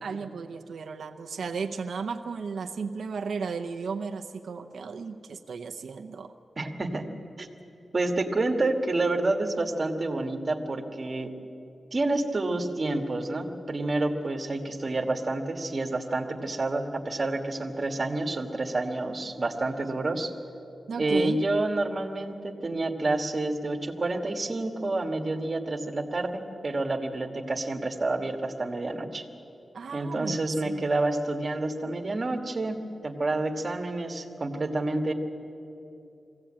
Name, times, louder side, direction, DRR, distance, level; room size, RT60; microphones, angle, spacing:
voice 1, 0.0-6.3 20.9-21.4 29.7-30.9, right 5 dB, 90° right, 4 dB, 0.8 m, -35 dB
voice 2, 6.6-7.1 7.4-7.5 7.9-11.3 11.9-20.3 21.0-29.2 29.9-35.1, right 2 dB, 35° right, 3 dB, 1.6 m, -29 dB
21.5 x 16.0 x 8.8 m, 2.8 s
wide cardioid pair, 160°, 0 cm